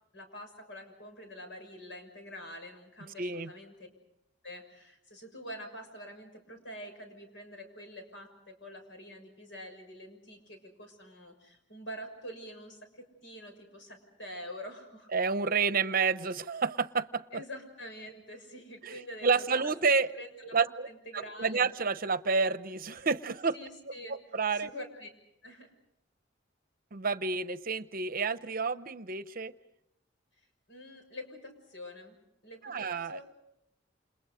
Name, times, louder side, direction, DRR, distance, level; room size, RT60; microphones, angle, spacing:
voice 1, 0.1-3.9 4.4-15.1 17.3-20.6 20.8-21.7 23.5-24.2 24.5-25.1 25.4-25.7 30.7-32.2 32.4-33.2, equal, 80° left, 5 dB, 6.6 m, -46 dB
voice 2, 3.0-3.5 15.1-17.2 18.8-20.1 20.5-20.9 21.1-23.6 24.1-24.7 26.9-29.5 32.6-33.2, right 5 dB, 50° right, 13 dB, 0.8 m, -29 dB
29.5 x 28.0 x 5.1 m, 0.81 s
head